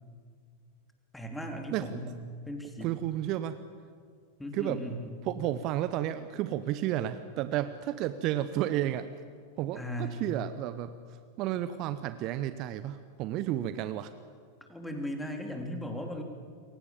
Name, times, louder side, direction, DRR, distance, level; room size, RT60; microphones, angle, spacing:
voice 1, 1.1-2.1 2.5-3.0 4.4-5.2 9.8-10.2 14.7-16.2, equal, 5° left, 3 dB, 3.7 m, -37 dB
voice 2, 2.8-3.6 4.5-4.8 5.2-9.1 9.6-10.9 11.4-14.1, right 12 dB, 40° right, 12 dB, 0.9 m, -32 dB
28.0 x 23.5 x 7.2 m, 2.1 s
figure-of-eight pair, 90°, 0 cm